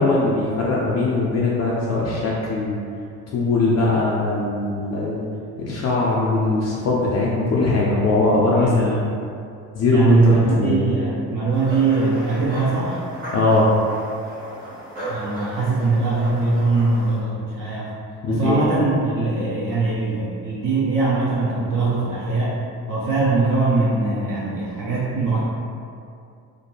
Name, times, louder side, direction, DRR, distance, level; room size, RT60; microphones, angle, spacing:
voice 1, 0.0-2.8 3.3-5.2 5.6-9.0 9.7-10.8 13.3-13.7 18.2-18.6, left 2 dB, 35° left, -5 dB, 0.4 m, -20 dB
voice 2, 8.5-9.0 9.9-13.0 15.1-17.9 18.3-22.6 22.9-25.4, right 3 dB, 45° right, -6 dB, 0.5 m, -21 dB
sound 1, 11.5-17.2, right 1 dB, 80° right, 1.1 m, -35 dB
2.4 x 2.1 x 2.9 m, 2.5 s
hypercardioid pair, 50°, 47 cm